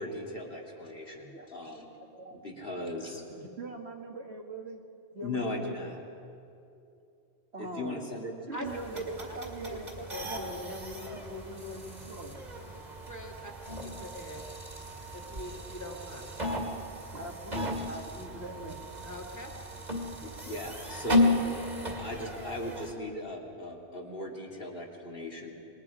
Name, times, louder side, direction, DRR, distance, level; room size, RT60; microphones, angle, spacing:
voice 1, 0.0-1.9 2.3-3.2 5.2-6.0 7.6-8.3 20.4-21.3 22.0-25.5, left 1 dB, 55° left, -1 dB, 2.9 m, -38 dB
voice 2, 3.3-4.8 5.1-5.8 7.5-8.0 8.5-13.0 14.0-14.1 17.1-18.8 22.8-22.9, right 1 dB, 65° right, 2 dB, 2.1 m, -42 dB
sound 1, 8.6-22.9, left 2 dB, 40° right, 2.5 m, -34 dB
voice 3, 8.9-9.7 10.1-10.7 13.1-13.5 13.8-14.4 15.1-16.3 19.0-19.6, equal, 15° left, 0 dB, 2.3 m, -42 dB
26.5 x 21.5 x 4.9 m, 2.6 s
omnidirectional pair, 1.2 m